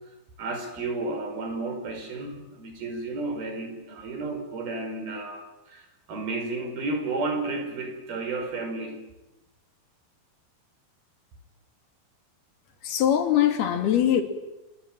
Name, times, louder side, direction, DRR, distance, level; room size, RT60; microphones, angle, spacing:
voice 1, 0.4-9.0, right 3 dB, 70° right, 5 dB, 7.0 m, -32 dB
voice 2, 12.8-14.2, left 10 dB, 80° left, 7 dB, 4.5 m, -22 dB
26.0 x 23.5 x 9.0 m, 0.98 s
omnidirectional pair, 4.4 m